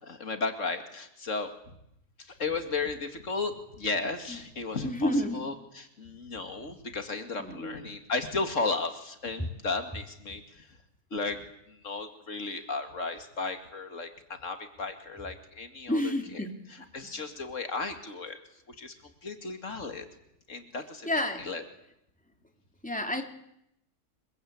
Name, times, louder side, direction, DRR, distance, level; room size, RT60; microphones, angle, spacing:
voice 1, 0.0-1.5 2.2-10.8 11.1-11.4 11.7-16.4 16.9-18.4 18.7-19.0 19.2-20.1 20.5-21.1 21.4-21.6, left 3 dB, 85° left, 7 dB, 2.6 m, -34 dB
voice 2, 4.8-5.4 7.4-7.8 9.4-9.5 15.9-16.6 17.1-17.2 21.0-21.5 22.8-23.2, left 1 dB, 5° left, 4 dB, 3.4 m, -30 dB
28.0 x 23.0 x 8.6 m, 0.77 s
omnidirectional pair, 1.3 m